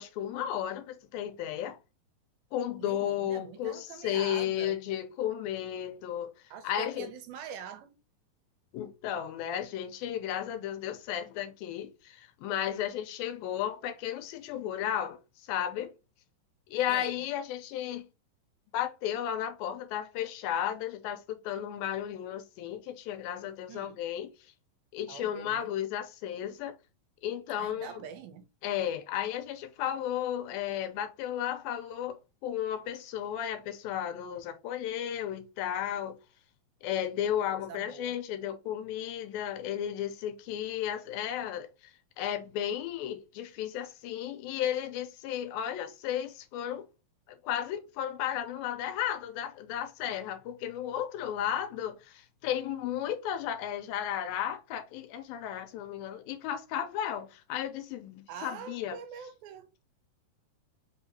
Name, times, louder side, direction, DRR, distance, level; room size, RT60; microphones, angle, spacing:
voice 1, 0.0-1.8 2.5-6.3 6.6-7.1 8.7-15.9 16.7-18.1 18.7-24.3 24.9-26.8 27.2-28.0 28.6-36.2 36.8-46.8 47.3-59.0, left 10 dB, 80° left, 2.4 m, -34 dB
voice 2, 2.8-4.8 6.5-8.0 16.9-17.2 23.7-24.0 25.1-25.7 27.6-28.4 37.5-38.1 58.3-59.7, right 7 dB, 85° right, 2.5 m, -44 dB
5.6 x 2.8 x 2.7 m
omnidirectional pair, 4.3 m